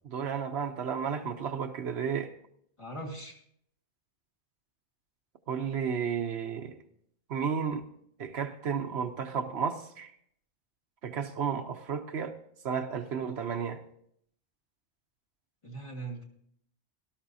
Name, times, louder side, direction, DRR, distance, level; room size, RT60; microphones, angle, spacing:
voice 1, 0.0-2.3 5.5-6.8 7.3-7.8 8.2-10.1 11.0-12.3 12.6-13.8, right 7 dB, 70° right, 1.0 m, -32 dB
voice 2, 2.8-3.4 15.6-16.2, right 2 dB, 25° left, 1.8 m, -40 dB
18.0 x 12.5 x 2.7 m
omnidirectional pair, 1.2 m